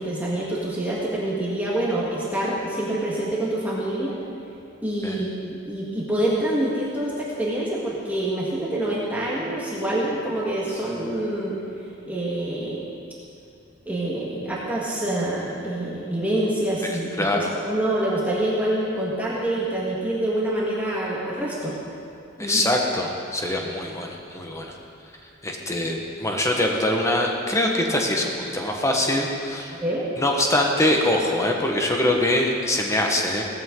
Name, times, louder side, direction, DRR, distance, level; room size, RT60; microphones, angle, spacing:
voice 1, 0.0-4.2 4.8-11.6 12.1-12.8 13.9-21.8 22.4-22.6 29.7-30.0, right 1 dB, 10° right, -6 dB, 1.7 m, -26 dB
voice 2, 16.9-17.5 22.4-24.7 25.4-29.7 30.2-33.5, left 1 dB, 15° left, 1 dB, 1.3 m, -23 dB
17.5 x 13.5 x 3.9 m, 2.7 s
head